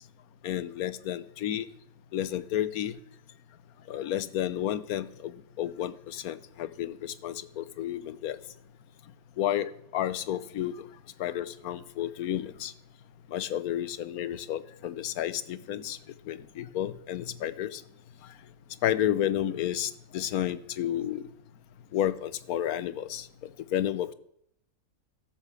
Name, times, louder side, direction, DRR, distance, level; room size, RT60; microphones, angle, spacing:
voice 1, 0.4-1.7 2.1-2.9 3.9-8.4 9.4-10.7 11.2-12.7 13.3-16.0 16.3-17.8 18.8-21.2 21.9-23.3 23.7-24.1, left 11 dB, 85° left, 16 dB, 1.2 m, -31 dB
12.5 x 8.1 x 7.0 m, 0.72 s
omnidirectional pair, 1.5 m